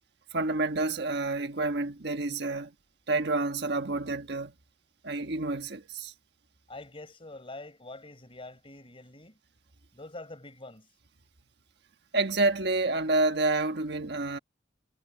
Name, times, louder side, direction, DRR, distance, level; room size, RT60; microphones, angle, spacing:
voice 1, 0.3-2.7 3.1-4.5 5.0-6.1 12.1-14.4, right 2 dB, 60° right, 1.4 m, -28 dB
voice 2, 6.7-9.4 9.9-10.9, left 2 dB, 30° left, 4.6 m, -45 dB
head